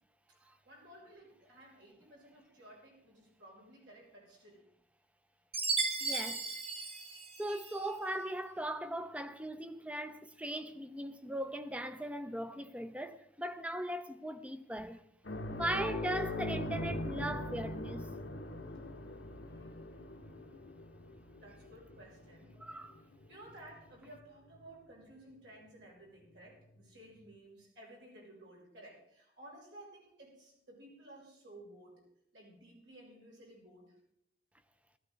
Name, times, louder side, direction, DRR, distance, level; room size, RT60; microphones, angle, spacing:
voice 1, 0.4-4.7 10.9-11.0 15.5-15.9 19.4-20.5 21.4-22.6 23.3-32.1 32.3-34.0, right 1 dB, 75° right, 7.0 m, -56 dB
Chime, 5.5-7.9, right 4 dB, 35° right, 1.3 m, -36 dB
voice 2, 6.0-6.5 7.4-15.0 15.5-18.1 22.6-23.0, right 1 dB, 5° right, 0.7 m, -39 dB
sound 1, 15.3-24.2 24.5-24.7 26.8-26.9, left 1 dB, 85° left, 1.4 m, -41 dB
18.0 x 14.5 x 4.0 m
head